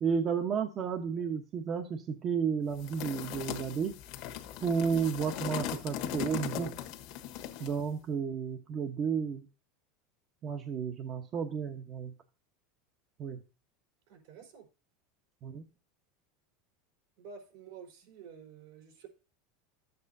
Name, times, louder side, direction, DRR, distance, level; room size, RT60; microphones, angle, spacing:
voice 1, 0.0-3.9 4.6-6.7 7.6-9.4 10.4-12.1 13.2-13.4 15.4-15.6, right 6 dB, 40° right, 4 dB, 1.1 m, -32 dB
sound 1, 2.8-7.8, left 11 dB, 60° left, 1.3 m, -39 dB
voice 2, 14.1-14.7 17.2-19.1, right 6 dB, 75° right, 2 dB, 4.2 m, -50 dB
12.0 x 8.1 x 2.7 m, 0.34 s
supercardioid pair, 115°, 0 cm